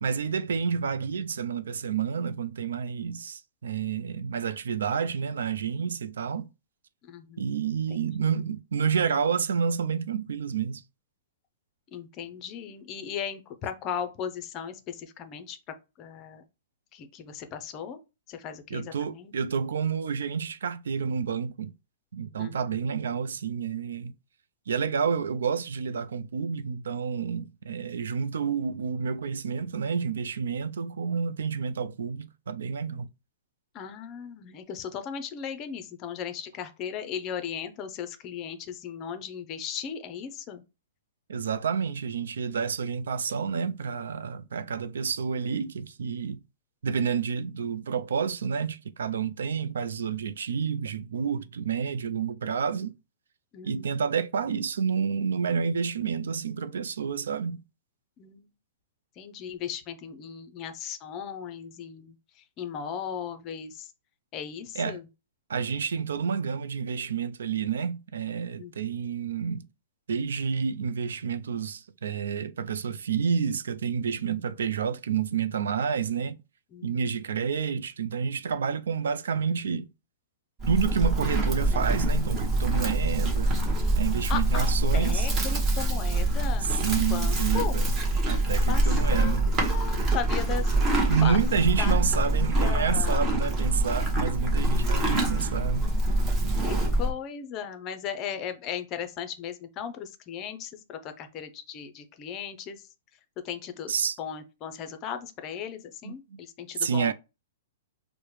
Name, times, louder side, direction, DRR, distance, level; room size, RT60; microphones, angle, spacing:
voice 1, 0.0-6.5 7.4-10.8 18.7-21.7 22.1-24.1 24.7-33.1 41.3-46.4 46.8-53.0 53.6-57.6 64.7-65.0 65.5-69.7 70.1-76.4 76.8-79.9 80.7-83.6 84.0-85.6 86.6-87.9 88.3-89.6 91.1-95.9 103.9-104.2 106.0-106.4 106.8-107.1, right 6 dB, 85° right, 0.4 m, -29 dB
voice 2, 7.0-7.4 7.9-8.3 11.9-15.6 16.0-16.4 16.9-18.0 18.3-19.3 22.4-22.8 33.7-40.6 53.5-54.0 58.2-58.5 59.2-62.1 62.6-63.9 64.3-65.0 68.6-68.7 76.7-77.4 84.3-84.7 84.9-87.8 88.7-89.4 89.7-91.4 91.8-93.2 94.8-95.8 96.6-102.8 103.4-103.9 104.2-107.1, left 8 dB, 25° left, 0.5 m, -37 dB
Livestock farm animals working animals, 80.6-97.1, right 1 dB, 20° right, 0.9 m, -25 dB
4.8 x 2.1 x 3.0 m
hypercardioid pair, 155°, 0 cm